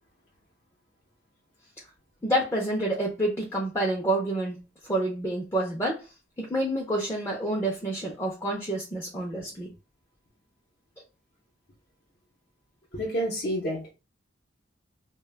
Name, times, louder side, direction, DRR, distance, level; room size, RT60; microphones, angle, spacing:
voice 1, 2.2-4.6 4.9-6.0 6.4-9.7, right 1 dB, 15° left, 0.5 m, -28 dB
voice 2, 12.9-13.9, equal, 55° left, 0.7 m, -29 dB
2.2 x 2.0 x 3.3 m
head